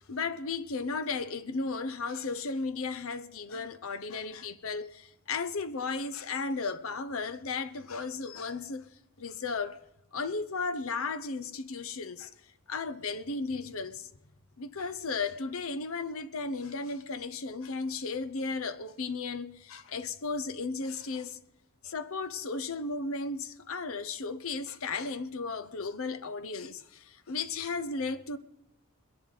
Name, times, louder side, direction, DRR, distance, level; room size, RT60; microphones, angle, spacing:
voice 1, 0.1-8.9 9.2-9.8 10.1-12.3 12.7-14.1 14.6-21.4 21.8-28.4, left 4 dB, 70° left, 0.8 m, -35 dB
22.0 x 10.5 x 4.0 m
head